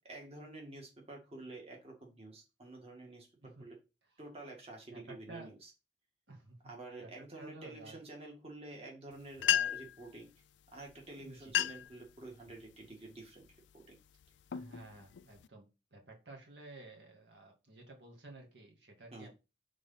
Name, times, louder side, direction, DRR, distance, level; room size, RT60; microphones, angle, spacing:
voice 1, 0.0-3.8 4.2-5.7 6.6-10.3 10.7-13.4 13.7-14.0 19.1-19.3, right 2 dB, 35° right, 0 dB, 1.9 m, -49 dB
voice 2, 4.9-5.5 6.3-6.7 7.0-8.0 11.2-11.5 14.5-19.3, right 2 dB, 70° right, 0 dB, 2.1 m, -53 dB
sound 1, 9.1-9.2 9.4-10.0 10.9-11.0 11.4-12.0 12.5-12.8 13.4-13.7 14.2-15.5, left 10 dB, 85° left, 0.4 m, -33 dB
6.3 x 3.9 x 5.7 m, 0.28 s
head